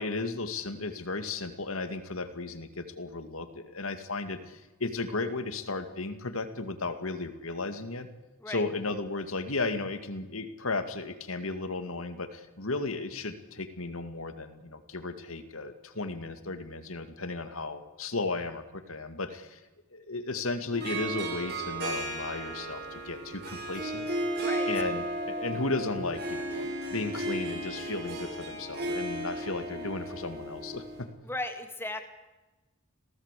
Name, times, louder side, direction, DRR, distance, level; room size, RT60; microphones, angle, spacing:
voice 1, 0.0-8.1 8.5-19.6 19.9-24.1 24.7-31.1, left 3 dB, 75° left, 9 dB, 2.3 m, -35 dB
Harp, 20.7-31.0, right 1 dB, 50° right, 6.1 m, -34 dB
voice 2, 24.3-24.7 31.2-32.0, left 2 dB, 10° left, 6 dB, 2.4 m, -36 dB
27.5 x 17.5 x 8.4 m, 1.1 s
head